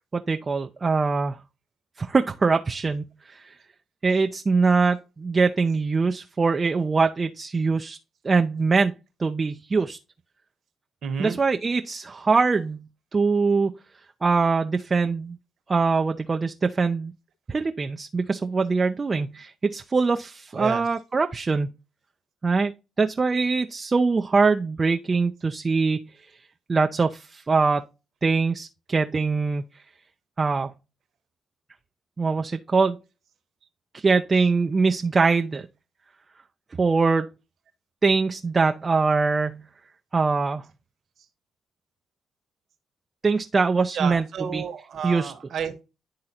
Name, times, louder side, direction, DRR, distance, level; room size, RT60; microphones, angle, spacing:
voice 1, 0.1-1.4 2.0-3.5 4.0-8.0 8.2-8.9 9.2-10.0 11.2-12.8 13.1-13.7 14.2-15.4 15.7-17.1 17.5-21.7 22.4-22.7 23.0-26.3 26.7-27.8 28.2-29.6 30.4-30.7 32.2-33.0 33.9-35.7 36.8-37.3 38.0-39.6 40.1-40.6 43.2-44.2 44.5-44.6 45.0-45.3, right 4 dB, 35° right, 0.6 m, -23 dB
voice 2, 11.0-11.4 20.5-20.8 43.9-45.8, right 7 dB, 65° right, 1.3 m, -31 dB
11.0 x 3.8 x 2.9 m
supercardioid pair, 60°, 0 cm